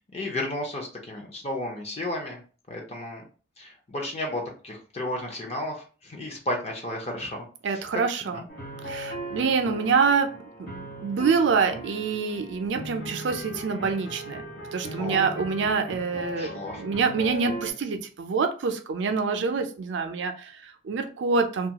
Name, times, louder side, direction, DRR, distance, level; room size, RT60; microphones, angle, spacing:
voice 1, 0.1-2.4 2.7-3.2 3.6-7.4 7.7-7.8 8.2-8.4 15.0-15.3 16.4-16.8, left 1 dB, 35° left, 1 dB, 0.6 m, -33 dB
voice 2, 7.6-8.4 8.8-14.4 14.7-16.5 16.8-21.7, right 5 dB, 65° right, 6 dB, 0.4 m, -26 dB
sound 1, 8.5-17.7, right 1 dB, 90° left, 1.1 m, -38 dB
2.3 x 2.3 x 2.8 m, 0.38 s
head